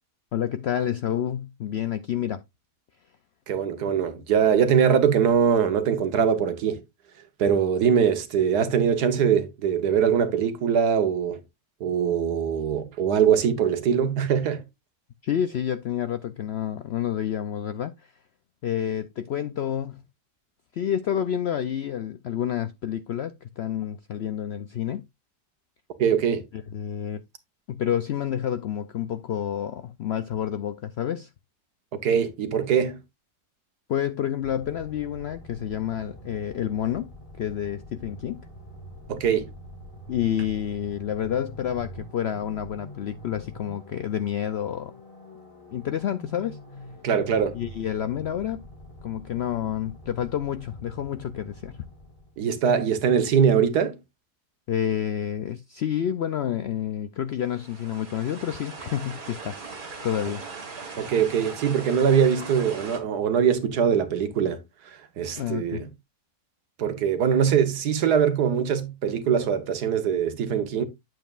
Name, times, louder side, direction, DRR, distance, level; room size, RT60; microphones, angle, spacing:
voice 1, 0.3-2.4 15.2-18.1 18.6-20.0 20.7-25.0 26.5-27.2 27.7-31.3 33.9-37.1 37.4-38.4 40.1-44.9 45.7-46.6 47.5-48.6 49.0-51.8 54.7-60.4 65.4-65.8, left 10 dB, 90° left, 0.5 m, -29 dB
voice 2, 3.5-6.8 7.4-11.4 11.8-14.6 26.0-26.4 32.0-33.0 39.1-39.5 47.0-47.6 52.4-53.9 61.0-64.6 65.2-65.9 66.8-70.8, right 7 dB, 80° right, 1.6 m, -22 dB
sound 1, 34.4-52.5, equal, 35° left, 2.7 m, -45 dB
sound 2, 57.4-63.0, right 4 dB, 60° right, 2.5 m, -39 dB
9.2 x 7.6 x 2.4 m
omnidirectional pair, 1.7 m